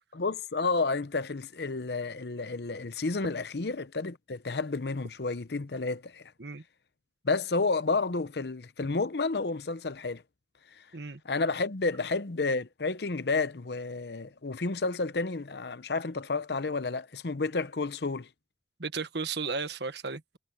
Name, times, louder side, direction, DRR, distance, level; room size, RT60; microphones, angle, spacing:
voice 1, 0.1-6.3 7.2-10.2 10.7-10.8 11.2-18.3, left 3 dB, 70° left, 0.8 m, -31 dB
voice 2, 18.8-20.4, right 4 dB, 70° right, 1.5 m, -34 dB
head